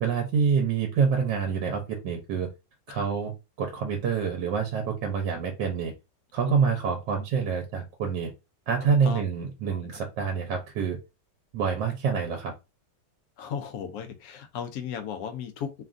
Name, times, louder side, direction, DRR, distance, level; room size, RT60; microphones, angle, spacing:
voice 1, 0.0-2.5 2.9-3.3 3.6-5.9 6.3-8.3 8.7-11.0 11.5-12.5, right 6 dB, 80° right, 1.2 m, -27 dB
voice 2, 13.4-15.8, left 7 dB, 70° left, 0.9 m, -36 dB
3.2 x 2.3 x 2.4 m
omnidirectional pair, 2.0 m